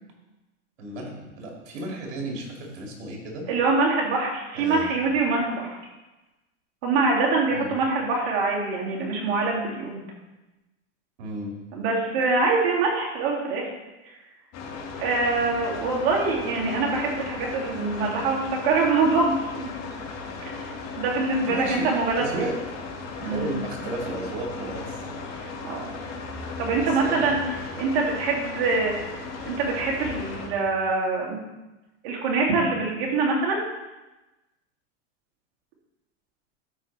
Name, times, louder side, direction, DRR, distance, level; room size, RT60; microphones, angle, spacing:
voice 1, 0.8-3.5 4.5-5.1 7.5-7.8 11.2-11.5 21.5-21.9 22.2-22.5 23.2-25.3 26.8-27.4, right 1 dB, 85° right, -1 dB, 2.6 m, -34 dB
voice 2, 3.5-5.8 6.8-10.0 11.7-13.7 15.0-19.7 20.4-20.5 21.0-22.5 23.2-23.6 25.6-25.9 26.6-27.4 27.8-28.9 29.5-31.4 32.0-33.6, right 3 dB, 60° right, -3 dB, 2.6 m, -24 dB
sound 1, 14.5-30.5, left 4 dB, 45° left, 1.9 m, -36 dB
12.5 x 5.1 x 3.4 m, 1.1 s
supercardioid pair, 125°, 36 cm